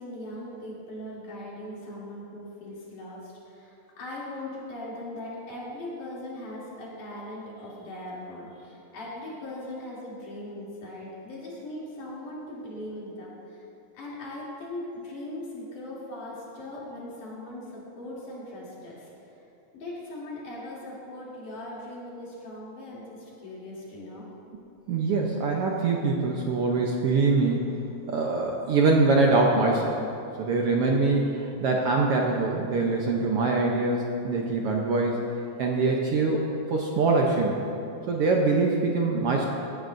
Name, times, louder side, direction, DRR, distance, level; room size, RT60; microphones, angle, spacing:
voice 1, 0.0-13.6 13.9-19.1 19.7-24.3, left 1 dB, 85° left, -7 dB, 4.5 m, -39 dB
voice 2, 24.9-27.7 28.1-30.0 30.4-35.2 35.6-37.7 38.1-39.4, right 3 dB, 70° right, -1 dB, 1.4 m, -24 dB
17.5 x 13.5 x 2.6 m, 2.8 s
omnidirectional pair, 3.5 m